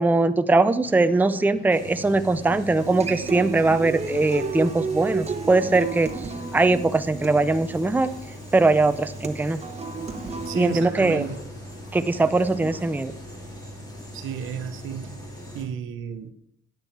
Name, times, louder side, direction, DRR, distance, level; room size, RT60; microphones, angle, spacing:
voice 1, 0.0-6.1 6.5-8.1 8.5-9.6 10.5-11.3 11.9-13.1, right 3 dB, 10° right, 10 dB, 0.5 m, -21 dB
sound 1, 0.8-14.0, left 1 dB, 75° left, 3.2 m, -45 dB
sound 2, 1.7-15.6, equal, 20° left, 3.3 m, -41 dB
Human voice / Acoustic guitar, 2.8-10.8, right 4 dB, 35° right, 1.0 m, -33 dB
voice 2, 10.4-11.4 14.1-15.2 15.5-16.3, right 7 dB, 85° right, 9 dB, 1.0 m, -32 dB
10.5 x 8.3 x 4.6 m, 0.72 s
cardioid pair, 90°, 20 cm